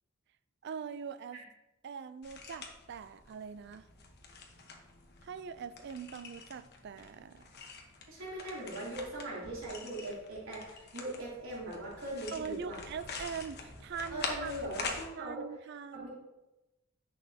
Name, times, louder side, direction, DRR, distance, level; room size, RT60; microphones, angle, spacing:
voice 1, 0.6-1.4 1.8-3.9 5.2-7.5 12.3-14.5 15.2-16.1, right 6 dB, 55° right, 13 dB, 0.3 m, -42 dB
sound 1, 2.2-15.1, left 4 dB, 50° left, 1.1 m, -45 dB
voice 2, 8.1-12.8 14.1-15.4 15.9-16.1, right 1 dB, 80° right, -7 dB, 3.0 m, -40 dB
10.0 x 6.5 x 2.8 m, 1.0 s
head